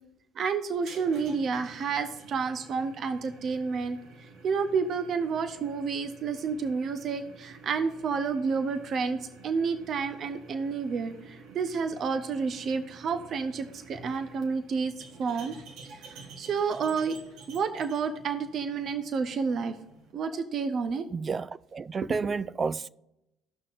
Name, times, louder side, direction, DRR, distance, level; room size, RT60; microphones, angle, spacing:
voice 1, 0.4-4.0 4.4-14.9 15.2-15.5 15.8-17.2 17.5-19.8 20.1-21.1 22.1-22.3, right 5 dB, 55° right, 0.7 m, -30 dB
sound 1, 0.7-20.1, right 3 dB, 70° right, 1.3 m, -50 dB
voice 2, 21.1-22.9, right 4 dB, 35° right, 0.3 m, -31 dB
15.0 x 5.9 x 2.5 m
supercardioid pair, 70°, 0 cm